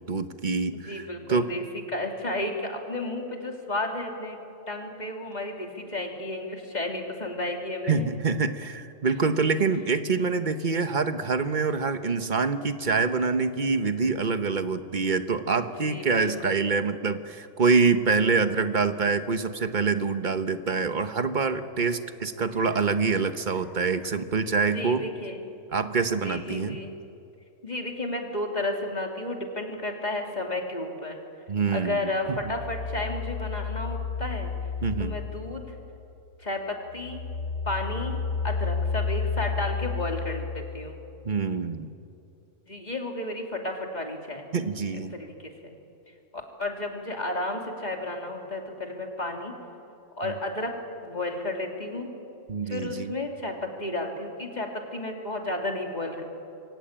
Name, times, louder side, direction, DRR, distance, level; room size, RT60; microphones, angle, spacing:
voice 1, 0.0-1.5 7.8-25.0 25.7-26.8 31.5-32.4 34.8-35.1 41.2-41.9 44.5-45.1 50.2-50.3 52.5-53.2, right 4 dB, 40° right, 10 dB, 1.2 m, -26 dB
voice 2, 0.7-1.6 1.9-4.4 4.7-8.1 15.5-16.6 24.7-25.4 26.2-26.9 27.6-31.2 31.7-34.5 35.0-35.7 36.4-37.2 37.6-41.0 42.7-44.5 45.2-45.7 46.3-49.5 50.2-50.7 51.0-52.1 52.7-56.2, left 2 dB, 35° left, 2 dB, 3.1 m, -32 dB
sound 1, 32.3-36.2 36.6-41.1, left 5 dB, 85° left, 1.8 m, -32 dB
27.0 x 23.5 x 8.9 m, 2.6 s
omnidirectional pair, 1.3 m